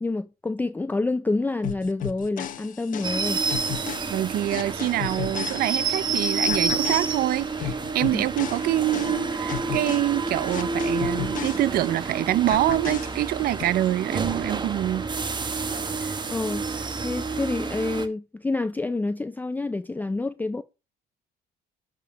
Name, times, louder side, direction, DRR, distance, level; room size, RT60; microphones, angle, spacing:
voice 1, 0.0-3.4 8.1-8.2 16.3-20.6, left 3 dB, 10° left, 0.4 m, -28 dB
sound 1, 1.6-6.1 6.5-12.1 12.5-13.6, left 10 dB, 50° left, 1.0 m, -35 dB
paris metro, 3.0-18.1, right 4 dB, 25° right, 1.1 m, -29 dB
voice 2, 4.1-15.1 16.0-16.1, right 14 dB, 65° right, 0.5 m, -25 dB
11.0 x 3.7 x 6.1 m
cardioid pair, 110°, 17 cm